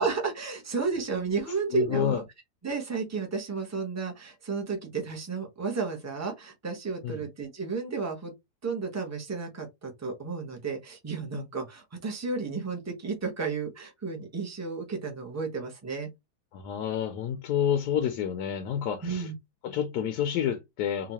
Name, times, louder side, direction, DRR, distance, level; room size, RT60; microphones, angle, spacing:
voice 1, 0.0-2.2 2.6-8.3 8.6-16.1 19.0-19.3, right 4 dB, 10° right, 0.9 m, -32 dB
voice 2, 1.7-2.2 7.0-7.2 16.5-19.3 19.6-21.1, left 9 dB, 85° left, 1.2 m, -29 dB
3.9 x 2.7 x 2.8 m
omnidirectional pair, 1.8 m